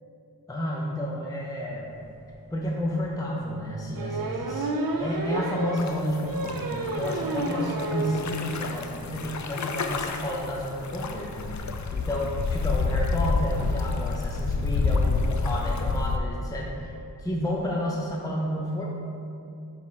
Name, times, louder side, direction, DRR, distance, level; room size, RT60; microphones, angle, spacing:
voice 1, 0.5-1.9 2.5-11.6 11.9-16.9 17.2-18.8, left 1 dB, 10° left, -3 dB, 0.8 m, -31 dB
sound 1, 2.2-2.3 2.7-2.8 4.0-8.3 8.6-8.7 9.0-9.1 9.3-9.5, right 2 dB, 55° right, 0.6 m, -30 dB
sound 2, 5.8-16.2, left 4 dB, 45° left, 0.5 m, -29 dB
6.3 x 4.2 x 3.7 m, 2.6 s
cardioid pair, 40°, 41 cm